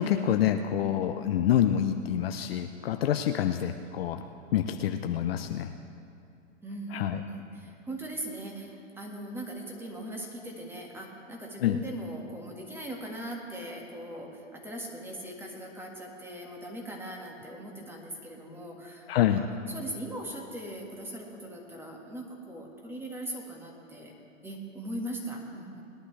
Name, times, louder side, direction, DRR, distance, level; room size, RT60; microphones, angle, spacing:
voice 1, 0.0-4.2 4.5-5.7 6.9-7.2 11.6-11.8 19.1-19.4, left 10 dB, 50° left, 7 dB, 0.6 m, -27 dB
voice 2, 6.6-24.1 24.4-25.8, right 1 dB, 5° right, 0 dB, 1.8 m, -40 dB
20.5 x 11.0 x 3.3 m, 2.6 s
hypercardioid pair, 130°, 39 cm